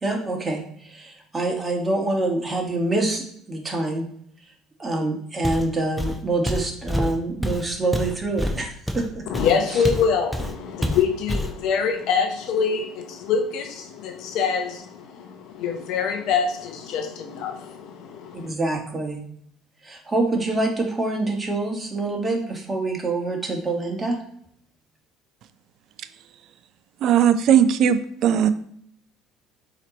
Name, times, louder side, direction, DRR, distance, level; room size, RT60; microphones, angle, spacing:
voice 1, 0.0-4.0 4.8-8.7 8.9-9.0 18.4-19.2 19.8-24.2, right 2 dB, 25° right, 1 dB, 1.4 m, -25 dB
Walk footsteps, 5.4-5.7 6.0-10.1 10.3-10.5 10.8-11.6, equal, ahead, 0.8 m, -27 dB
voice 2, 9.3-18.5, left 6 dB, 65° left, 5 dB, 0.6 m, -25 dB
voice 3, 27.0-28.5, right 9 dB, 60° right, 12 dB, 0.4 m, -18 dB
4.3 x 3.0 x 4.0 m, 0.67 s
hypercardioid pair, 75°, 0 cm